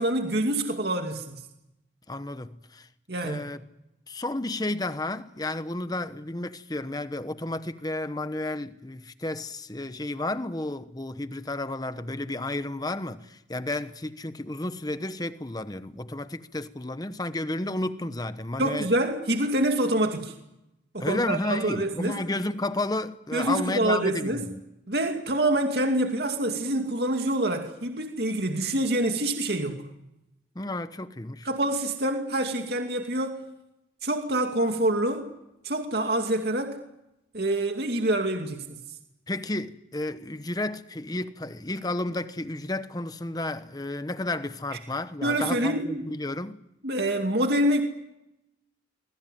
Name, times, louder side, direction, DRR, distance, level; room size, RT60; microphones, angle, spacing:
voice 1, 0.0-1.4 3.1-3.5 18.6-20.3 20.9-22.2 23.3-24.4 24.9-29.9 31.4-33.4 34.0-35.3 35.6-36.8 37.3-38.8 45.2-46.0 46.8-47.8, right 1 dB, 60° right, 2.5 m, -26 dB
voice 2, 2.1-2.9 3.2-3.6 4.1-18.9 21.0-24.6 30.5-31.5 39.3-46.6, left 2 dB, 20° left, 1.0 m, -32 dB
25.0 x 21.5 x 9.2 m
head